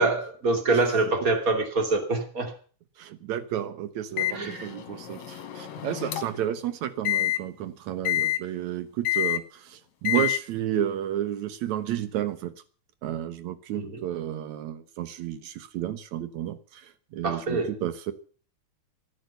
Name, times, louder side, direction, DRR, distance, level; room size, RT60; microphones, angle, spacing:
voice 1, 0.0-2.5 4.3-4.7 13.8-14.0 17.2-17.7, right 2 dB, 25° right, 5 dB, 2.9 m, -25 dB
voice 2, 3.0-12.5 13.0-16.8 17.1-18.1, right 11 dB, 70° right, 12 dB, 2.4 m, -31 dB
Microwave oven, 4.2-6.5 7.1-7.4 8.1-8.4 9.1-9.4 10.1-10.4, left 16 dB, 65° left, 2.4 m, -28 dB
14.5 x 11.0 x 6.9 m, 0.42 s
omnidirectional pair, 3.6 m